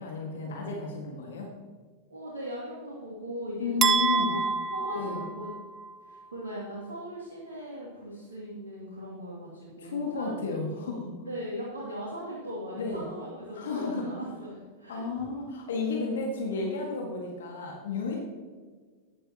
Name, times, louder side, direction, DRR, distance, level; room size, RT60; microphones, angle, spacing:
voice 1, 0.0-1.5 3.6-4.3 5.0-5.2 9.8-11.3 12.8-13.1 13.5-14.1 14.9-18.2, left 4 dB, 60° left, 0 dB, 1.8 m, -32 dB
voice 2, 2.1-4.4 4.7-5.5 6.0-10.7 11.2-15.1, equal, 70° right, -5 dB, 2.4 m, -39 dB
sound 1, 3.8-5.9, right 5 dB, 30° right, 0.6 m, -27 dB
14.5 x 9.9 x 3.0 m, 1.5 s
figure-of-eight pair, 90°, 0 cm